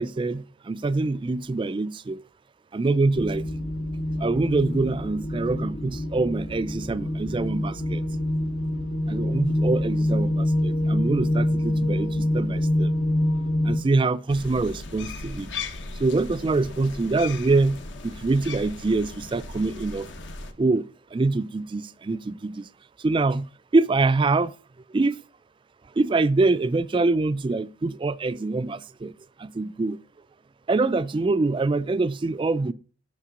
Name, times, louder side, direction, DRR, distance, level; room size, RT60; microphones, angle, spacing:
voice 1, 0.0-2.2 2.7-3.4 4.2-8.0 9.1-12.9 13.6-15.5 16.0-20.1 20.6-22.7 23.0-24.5 24.9-25.2 26.0-29.1 29.4-30.0 30.7-32.7, right 3 dB, 25° right, 0.3 m, -25 dB
sound 1, 3.1-13.8, left 1 dB, 50° left, 1.9 m, -26 dB
sound 2, 14.3-20.5, left 3 dB, 65° left, 1.0 m, -37 dB
8.4 x 6.0 x 5.0 m
head